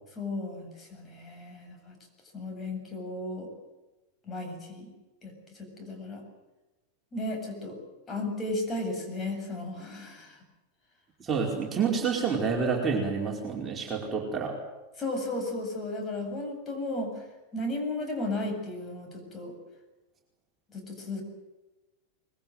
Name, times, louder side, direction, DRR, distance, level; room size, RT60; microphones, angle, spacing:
voice 1, 0.2-2.0 2.3-3.5 4.3-4.9 5.2-5.3 5.6-6.2 7.1-7.8 8.1-10.4 15.0-17.2 17.5-19.5 20.7-21.2, left 2 dB, 20° left, 3 dB, 7.9 m, -34 dB
voice 2, 11.2-14.6, right 5 dB, 20° right, 0 dB, 4.9 m, -28 dB
25.0 x 22.0 x 7.9 m, 1.1 s
figure-of-eight pair, 90°, 0 cm